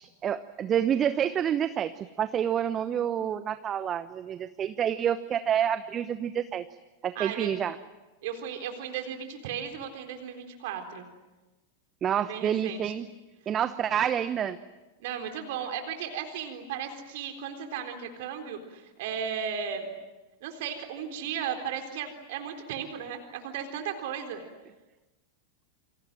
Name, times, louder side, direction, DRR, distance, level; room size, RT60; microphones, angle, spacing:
voice 1, 0.0-6.6 7.0-7.8 12.0-13.1 13.5-14.6, right 9 dB, 25° right, 13 dB, 0.9 m, -28 dB
voice 2, 7.2-7.5 8.2-11.1 12.3-12.9 15.0-19.9 20.4-24.4, right 8 dB, 50° right, 5 dB, 3.8 m, -35 dB
29.0 x 26.0 x 7.7 m, 1.1 s
figure-of-eight pair, 90°, 0 cm